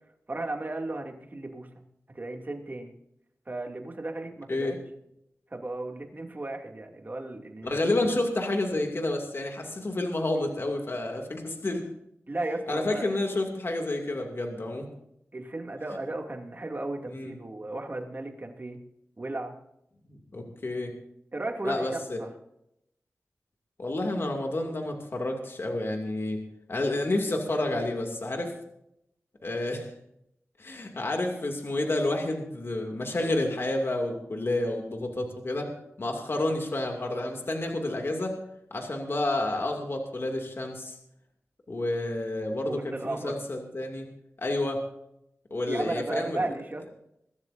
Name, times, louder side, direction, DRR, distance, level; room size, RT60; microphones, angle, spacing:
voice 1, 0.3-1.7 2.1-3.0 3.5-4.8 5.5-7.8 12.3-13.2 15.3-18.8 19.2-19.6 21.3-22.3 42.6-43.4 45.7-46.9, right 2 dB, 35° right, 2 dB, 2.6 m, -35 dB
voice 2, 7.6-11.8 12.7-14.9 17.1-17.4 20.1-20.9 21.6-22.2 23.8-26.4 26.7-28.5 29.4-29.9 30.6-35.7 36.0-38.3 38.7-41.0 41.7-44.1 44.4-44.8 45.5-46.5, left 2 dB, 50° left, 2 dB, 2.5 m, -30 dB
22.5 x 13.0 x 2.7 m, 0.79 s
wide cardioid pair, 70°, 5 cm